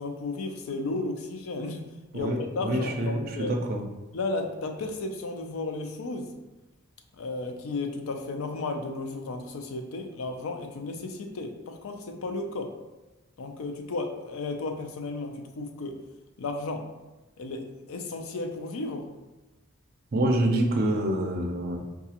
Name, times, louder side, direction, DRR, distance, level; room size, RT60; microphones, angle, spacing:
voice 1, 0.0-3.6 4.1-6.3 7.2-12.8 13.4-16.0 16.4-16.9 17.4-19.1, left 3 dB, 85° left, 5 dB, 0.5 m, -34 dB
voice 2, 2.1-3.8 20.1-21.8, right 1 dB, 45° right, 2 dB, 0.5 m, -26 dB
4.8 x 2.3 x 2.8 m, 1.1 s
head